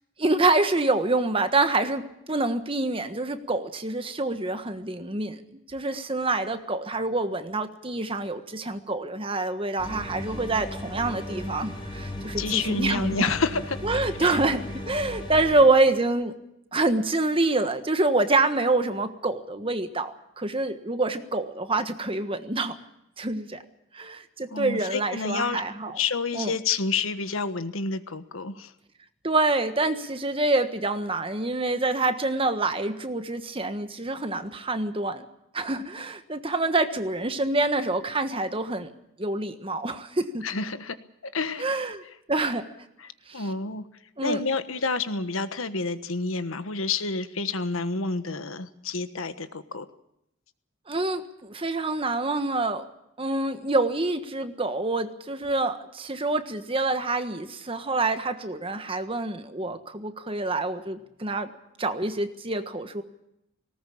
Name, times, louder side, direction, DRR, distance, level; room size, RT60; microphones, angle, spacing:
voice 1, 0.2-5.4 5.7-13.3 13.8-16.3 16.7-22.7 23.2-23.6 23.9-26.0 26.3-26.5 29.2-35.3 35.5-38.9 39.2-40.4 41.6-42.0 42.3-42.7 43.3-43.5 44.2-44.4 50.9-52.8 53.2-61.5 61.8-63.0, right 2 dB, 25° right, 9 dB, 1.4 m, -26 dB
sound 1, 9.8-15.6, left 1 dB, 25° left, 3.9 m, -36 dB
voice 2, 12.4-13.8 14.2-14.4 24.5-25.6 26.0-28.7 40.4-41.0 41.3-41.7 43.0-43.8 44.2-49.8, left 4 dB, 80° left, 11 dB, 1.4 m, -29 dB
19.0 x 18.5 x 8.6 m, 0.81 s
head